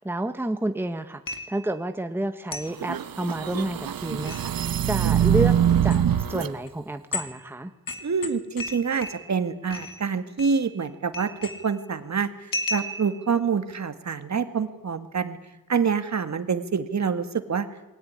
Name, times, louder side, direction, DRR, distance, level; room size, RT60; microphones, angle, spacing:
voice 1, 0.0-5.5 5.8-6.0 6.3-7.7, right 1 dB, 5° right, 8 dB, 1.2 m, -30 dB
sound 1, 1.3-1.7 2.5-2.8 4.1-4.5 5.8-6.0 6.7-6.8 7.1-7.4 7.9-9.4 9.7-10.0 10.4-10.9 11.1-11.8 12.5-13.3, left 2 dB, 70° left, 2.9 m, -34 dB
sound 2, 2.7-6.5, right 9 dB, 75° right, 1.0 m, -23 dB
voice 2, 8.0-11.3 11.6-15.4 15.7-17.7, right 6 dB, 50° right, 10 dB, 2.0 m, -26 dB
28.0 x 21.0 x 9.8 m, 1.0 s
wide cardioid pair, 165°, 35 cm